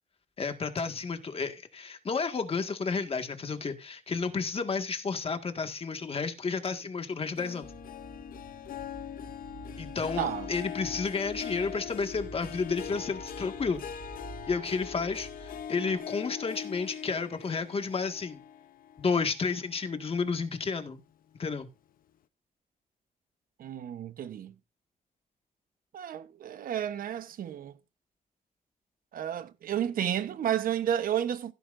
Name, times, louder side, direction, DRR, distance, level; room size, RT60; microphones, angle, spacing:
voice 1, 0.4-7.7 9.8-13.8 14.5-18.4 19.0-21.0 21.4-21.7, left 4 dB, 40° left, 1.9 m, -31 dB
Harp, 7.4-20.1 20.5-20.9 21.4-21.5, left 9 dB, 80° left, 0.9 m, -42 dB
sound 1, 7.6-16.0, right 3 dB, 40° right, 4.0 m, -49 dB
voice 2, 10.2-10.5 23.6-24.5 25.9-27.7 29.1-31.5, right 10 dB, 80° right, 1.1 m, -31 dB
16.0 x 9.2 x 2.6 m
cardioid pair, 95°, 14 cm